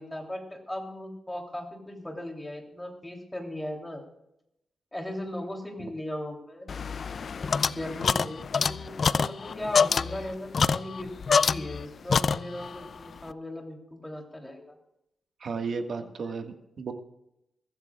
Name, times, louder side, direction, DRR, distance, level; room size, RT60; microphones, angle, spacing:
voice 1, 0.0-4.0 4.9-6.7 7.4-14.8 16.0-16.1, left 1 dB, 10° left, 1 dB, 3.2 m, -38 dB
sound 1, 6.7-11.9 12.1-12.8, left 5 dB, 50° left, 0.4 m, -26 dB
voice 2, 15.4-16.9, right 5 dB, 55° right, 5 dB, 1.7 m, -34 dB
23.0 x 15.0 x 2.4 m, 0.85 s
wide cardioid pair, 135°, 0 cm